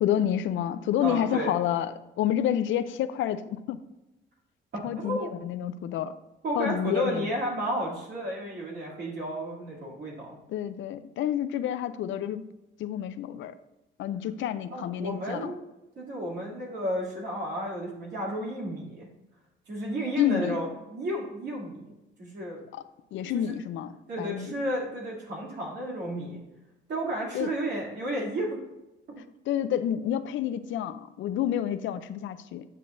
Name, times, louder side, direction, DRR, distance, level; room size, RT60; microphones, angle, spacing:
voice 1, 0.0-3.8 4.8-6.1 6.6-7.3 10.5-12.5 12.8-13.5 14.0-15.5 20.2-20.6 22.7-22.8 23.1-24.5 27.3-27.5 29.5-32.7, left 10 dB, 75° left, 12 dB, 0.5 m, -29 dB
voice 2, 1.0-1.5 4.7-5.3 6.4-10.4 14.7-15.7 16.0-19.1 19.7-22.6 23.3-23.5 24.1-26.4 26.9-28.6 29.1-29.2, right 1 dB, 60° right, -3 dB, 2.7 m, -32 dB
8.6 x 6.6 x 2.6 m, 0.96 s
cardioid pair, 90°, 20 cm